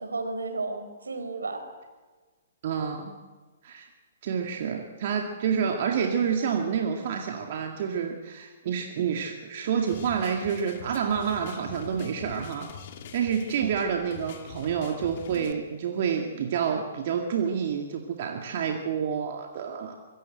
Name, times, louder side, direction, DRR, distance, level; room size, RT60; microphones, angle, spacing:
voice 1, 0.0-1.7 6.4-6.6 13.6-13.7 15.3-15.7, right 3 dB, 75° right, 8 dB, 4.6 m, -34 dB
voice 2, 2.6-3.1 3.6-3.9 4.2-12.7 13.1-20.0, right 7 dB, 50° right, 2 dB, 2.3 m, -28 dB
sound 1, 9.9-15.5, left 7 dB, 50° left, 2.6 m, -44 dB
25.5 x 23.0 x 7.9 m, 1.3 s
figure-of-eight pair, 120°, 0 cm